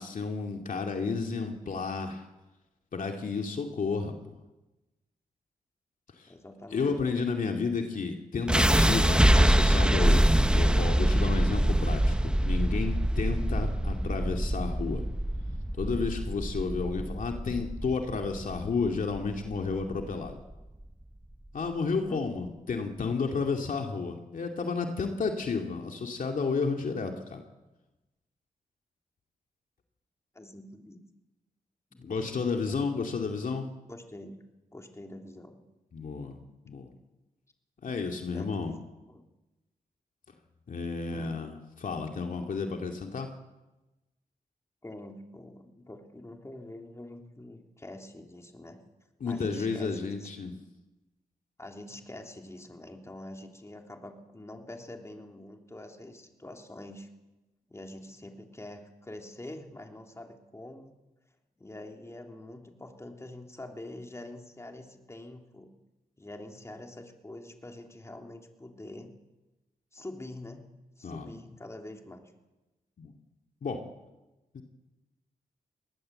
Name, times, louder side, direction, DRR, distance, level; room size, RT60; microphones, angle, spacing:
voice 1, 0.0-2.3 2.9-4.1 6.2-6.3 6.7-15.0 15.8-20.4 21.5-27.4 32.0-33.7 35.9-36.4 36.7-36.9 37.8-38.7 40.7-43.3 49.2-50.5 71.0-71.3 73.0-73.1 73.6-73.8 74.5-74.6, left 4 dB, 65° left, 3 dB, 2.5 m, -32 dB
voice 2, 6.3-6.9 22.1-22.2 30.3-31.0 31.9-33.0 33.9-34.3 34.7-35.6 38.3-39.2 41.1-41.4 44.8-48.8 49.3-50.3 51.6-57.1 57.7-61.0 61.6-65.7 66.2-69.1 69.9-70.7 71.0-72.3, left 1 dB, 20° left, 3 dB, 3.4 m, -45 dB
sound 1, 8.5-20.5, right 1 dB, 5° right, 1.0 m, -25 dB
22.0 x 18.5 x 7.8 m, 1.0 s
cardioid pair, 70°, 15 cm